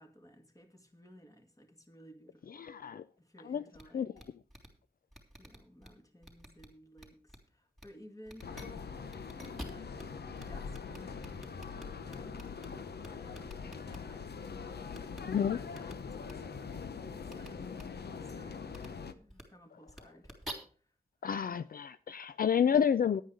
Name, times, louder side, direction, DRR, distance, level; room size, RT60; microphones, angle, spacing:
voice 1, 0.0-2.7 3.2-4.1 5.4-9.2 9.7-9.9 10.4-14.3 15.5-16.6 17.1-17.8 18.2-20.4 20.8-20.9, equal, 20° left, 2.1 m, -57 dB
voice 2, 2.6-3.0 3.4-3.6 3.9-4.1 15.2-15.6 21.2-23.2, left 8 dB, 60° left, 0.4 m, -29 dB
sound 1, 3.7-3.8 4.2-4.3 4.5-4.7 5.1-5.9 6.2-6.7 7.0-7.4 7.8-7.9 8.2-8.6 9.1-10.0 10.4-10.5 10.7-12.7 13.0-14.0 14.9-15.2 15.7-15.9 16.2-16.3 17.3-17.5 17.7-17.8 18.7-18.9 19.3-19.4 19.9-20.5, right 1 dB, ahead, 3.4 m, -47 dB
sound 2, 8.4-19.1, left 5 dB, 85° left, 0.9 m, -43 dB
10.5 x 9.2 x 5.0 m
wide cardioid pair, 105°, 17 cm